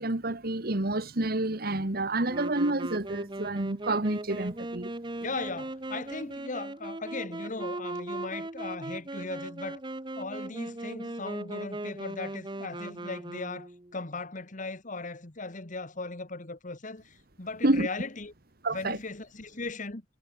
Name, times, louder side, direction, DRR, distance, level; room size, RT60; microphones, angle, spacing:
voice 1, 0.0-4.9 17.6-17.9 18.6-19.0, right 2 dB, 55° right, 1.9 m, -29 dB
Wind instrument woodwind instrument, 2.3-14.0, right 2 dB, 25° right, 1.3 m, -38 dB
voice 2, 5.2-9.8 10.2-18.3 18.7-20.0, left 3 dB, 45° left, 1.9 m, -38 dB
head